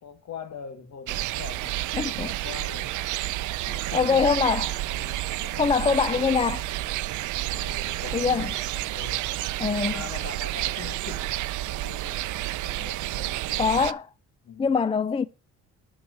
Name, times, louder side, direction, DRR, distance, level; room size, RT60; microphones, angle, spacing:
voice 1, 0.0-2.9 3.7-4.4 4.9-6.3 7.5-9.3 9.9-13.6 14.4-14.7, left 7 dB, 60° left, 1.7 m, -42 dB
sound 1, 1.1-13.9, right 16 dB, 80° right, 0.5 m, -30 dB
voice 2, 1.9-2.3 3.7-4.8 5.6-6.6 8.1-8.5 9.6-10.0 13.6-14.1 14.6-15.2, left 5 dB, 20° left, 0.4 m, -24 dB
12.0 x 4.7 x 6.6 m
cardioid pair, 90°, 30 cm